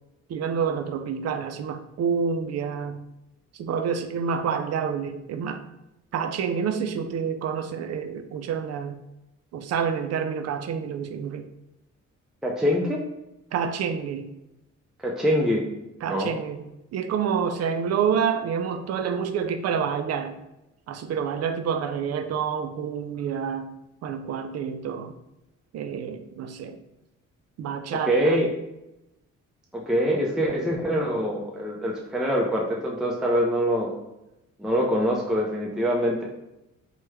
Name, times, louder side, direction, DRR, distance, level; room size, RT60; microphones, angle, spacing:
voice 1, 0.3-3.0 3.5-5.6 6.1-9.0 9.5-11.5 13.5-14.3 16.0-16.6 16.9-20.4 20.9-23.7 24.0-25.1 25.7-26.8 27.6-28.4, right 7 dB, 55° right, 9 dB, 0.4 m, -28 dB
voice 2, 12.4-13.0 15.0-15.6 16.1-16.3 28.0-28.5 29.7-33.9 34.6-36.3, equal, ahead, -2 dB, 0.4 m, -24 dB
3.0 x 2.2 x 3.2 m, 0.92 s
cardioid pair, 90°, 30 cm